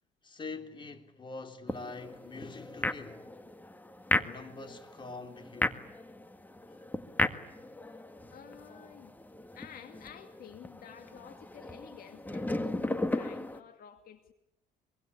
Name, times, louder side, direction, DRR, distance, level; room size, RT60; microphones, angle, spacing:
voice 1, 0.2-3.3 4.1-5.9, left 3 dB, 30° left, 3.7 m, -44 dB
sound 1, 1.7-13.6, left 1 dB, 10° left, 1.7 m, -36 dB
voice 2, 8.3-9.2 9.5-14.3, left 9 dB, 60° left, 2.3 m, -51 dB
25.0 x 24.0 x 9.9 m
cardioid pair, 110°, 17 cm